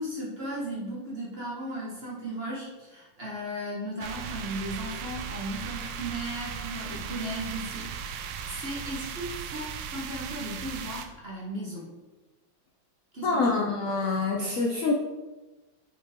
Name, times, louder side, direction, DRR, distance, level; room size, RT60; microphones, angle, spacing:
voice 1, 0.0-11.9 13.1-13.6, right 1 dB, 35° right, -4 dB, 1.3 m, -36 dB
sound 1, 4.0-11.1, right 7 dB, 85° right, 1.4 m, -37 dB
voice 2, 13.2-14.9, left 3 dB, 65° left, 0 dB, 0.8 m, -26 dB
5.8 x 5.2 x 3.6 m, 1.1 s
omnidirectional pair, 2.1 m